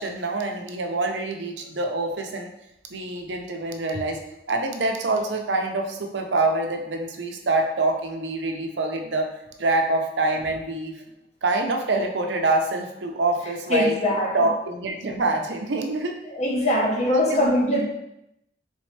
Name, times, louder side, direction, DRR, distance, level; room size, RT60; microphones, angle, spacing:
voice 1, 0.0-2.5 2.9-4.2 4.5-9.3 9.6-11.0 11.4-14.0 14.3-16.2 17.1-17.5, right 2 dB, 85° right, 3 dB, 0.6 m, -25 dB
voice 2, 13.7-14.4 16.3-17.8, left 1 dB, 40° left, -1 dB, 0.9 m, -22 dB
4.3 x 3.5 x 3.2 m, 0.84 s
head